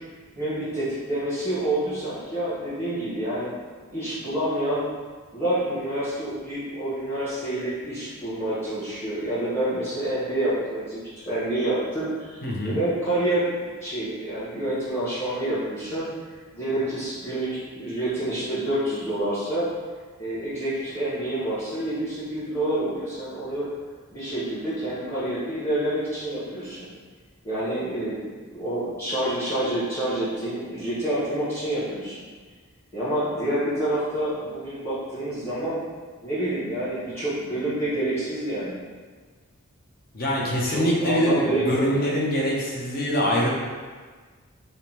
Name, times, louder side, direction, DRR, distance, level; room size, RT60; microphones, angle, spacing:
voice 1, 0.3-3.5 3.9-4.9 5.3-11.0 11.3-16.1 16.5-19.7 20.2-23.7 24.1-26.9 27.4-28.2 28.5-32.2 32.9-35.8 36.2-38.8 40.6-42.1, right 1 dB, 10° left, -11 dB, 1.1 m, -28 dB
voice 2, 12.4-12.8 40.1-43.5, equal, 45° left, -3 dB, 0.7 m, -24 dB
4.9 x 2.1 x 2.9 m, 1.5 s
head